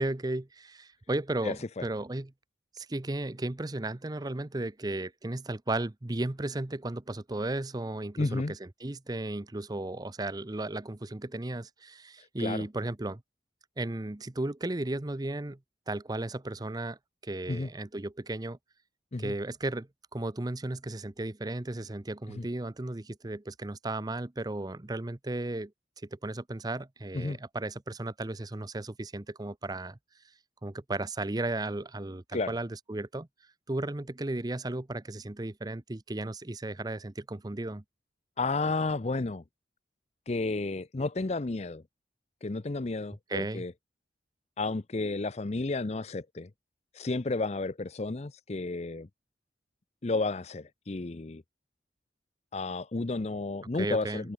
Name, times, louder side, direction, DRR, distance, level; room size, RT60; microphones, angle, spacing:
voice 1, 0.0-2.3 2.7-13.2 13.8-15.6 15.9-17.0 17.2-18.6 19.2-25.7 26.1-30.0 30.6-33.3 33.7-37.8 43.3-43.6 53.8-54.3, right 2 dB, 20° right, 0.7 m, -35 dB
voice 2, 1.4-1.8 8.2-8.5 12.2-12.6 17.5-17.7 19.1-19.3 22.4-22.5 27.1-27.4 32.3-32.5 38.4-39.4 40.3-41.8 42.4-43.7 44.6-46.5 46.9-49.1 50.0-51.4 52.5-54.3, left 3 dB, 35° left, 0.6 m, -32 dB
head